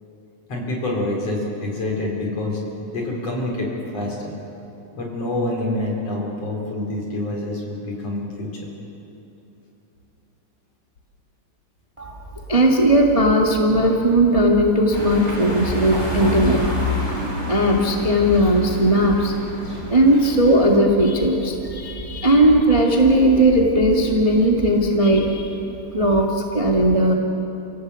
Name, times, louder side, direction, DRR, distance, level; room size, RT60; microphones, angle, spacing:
voice 1, 0.5-2.6 2.9-3.7 3.9-4.3 4.9-8.6, left 1 dB, 50° left, -1 dB, 5.5 m, -26 dB
voice 2, 12.5-17.1 17.5-19.3 19.9-25.6 25.9-27.1, right 1 dB, 15° right, -1 dB, 1.2 m, -17 dB
sound 1, 14.9-20.7, left 2 dB, 10° left, 3.7 m, -29 dB
29.5 x 17.5 x 8.3 m, 3.0 s
omnidirectional pair, 3.8 m